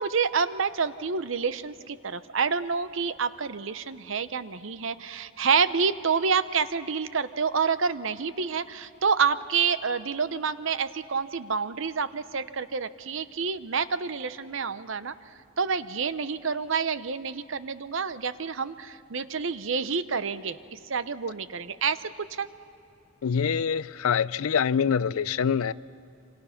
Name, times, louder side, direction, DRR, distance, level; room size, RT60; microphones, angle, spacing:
voice 1, 0.0-15.1 15.6-20.6 20.9-22.5, right 5 dB, 60° right, 13 dB, 0.7 m, -28 dB
voice 2, 23.2-25.7, left 7 dB, 80° left, 19 dB, 0.4 m, -25 dB
27.5 x 25.5 x 5.8 m, 2.8 s
head